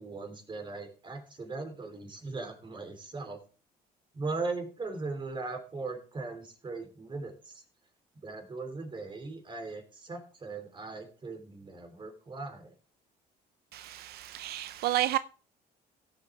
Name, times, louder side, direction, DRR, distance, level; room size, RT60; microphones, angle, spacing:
voice 1, 0.0-3.4 4.1-7.6 8.2-12.7, right 3 dB, 30° right, 3.3 m, -39 dB
voice 2, 13.7-15.2, right 14 dB, 70° right, 0.5 m, -31 dB
17.0 x 7.4 x 3.4 m
cardioid pair, 110°, 17 cm